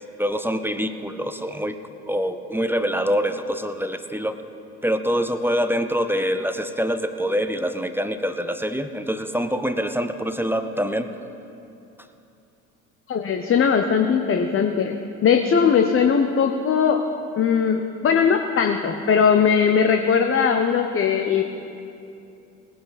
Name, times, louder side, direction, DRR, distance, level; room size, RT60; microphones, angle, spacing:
voice 1, 0.2-1.8 2.1-4.3 4.8-11.1, equal, 5° right, 9 dB, 0.7 m, -25 dB
voice 2, 13.1-14.9 15.2-17.0 17.4-21.4, left 6 dB, 30° left, 5 dB, 0.9 m, -19 dB
19.5 x 10.0 x 4.2 m, 2.7 s
hypercardioid pair, 65°, 42 cm